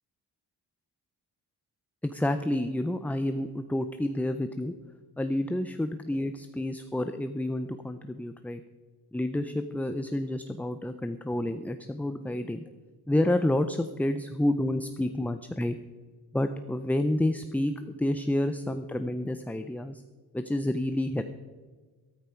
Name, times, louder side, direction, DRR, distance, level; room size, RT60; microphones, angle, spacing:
voice 1, 2.0-4.7 5.2-8.6 9.1-12.6 13.1-15.8 16.3-20.0 20.3-21.2, left 1 dB, 5° left, 9 dB, 0.4 m, -29 dB
13.5 x 13.0 x 4.5 m, 1.4 s
wide cardioid pair, 130°, 39 cm